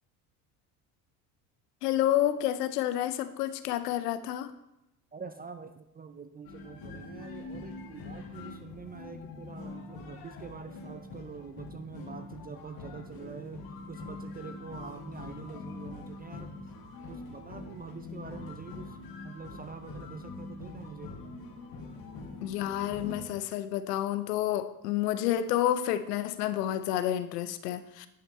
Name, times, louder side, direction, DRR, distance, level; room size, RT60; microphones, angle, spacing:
voice 1, 1.8-4.5 22.4-28.1, left 12 dB, 85° left, 12 dB, 0.7 m, -29 dB
voice 2, 5.1-16.7 17.1-19.0 19.2-21.2, right 5 dB, 20° right, 9 dB, 0.5 m, -45 dB
sound 1, 6.4-23.3, left 3 dB, 50° left, 1.8 m, -44 dB
10.5 x 5.9 x 4.2 m, 0.90 s
hypercardioid pair, 75°, 46 cm